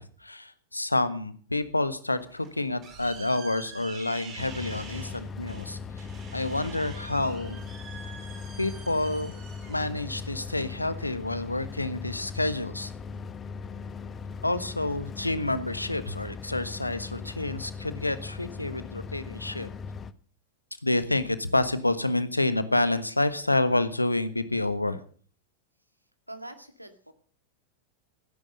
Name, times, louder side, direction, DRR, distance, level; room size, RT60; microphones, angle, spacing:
voice 1, 0.0-6.1 6.3-7.7 8.6-9.3 9.7-12.9 14.4-19.7 20.8-25.0, left 2 dB, 85° left, 14 dB, 1.3 m, -28 dB
sound 1, 2.2-11.3, right 5 dB, 30° right, 5.5 m, -47 dB
sound 2, 4.4-20.1, left 5 dB, 25° left, 1.0 m, -39 dB
voice 2, 26.3-27.1, right 1 dB, 90° right, 9 dB, 2.0 m, -43 dB
17.0 x 10.0 x 6.6 m, 0.43 s
figure-of-eight pair, 90°, 0 cm